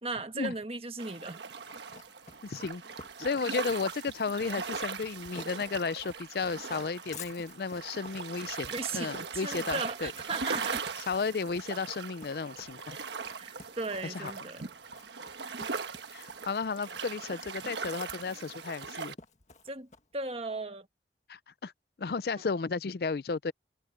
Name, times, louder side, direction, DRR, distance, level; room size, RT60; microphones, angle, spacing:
voice 1, 0.0-1.4 8.7-10.8 13.4-14.7 19.6-19.9 20.1-20.9, right 3 dB, 35° right, 1.3 m, -36 dB
sound 1, 1.0-19.1, right 5 dB, 85° right, 1.3 m, -40 dB
Run, 1.6-20.2, left 3 dB, 40° left, 1.9 m, -51 dB
voice 2, 2.4-2.8 3.2-10.1 11.1-13.0 14.0-14.3 16.1-19.2 21.3-21.7 22.0-23.5, left 4 dB, 60° left, 0.5 m, -33 dB
head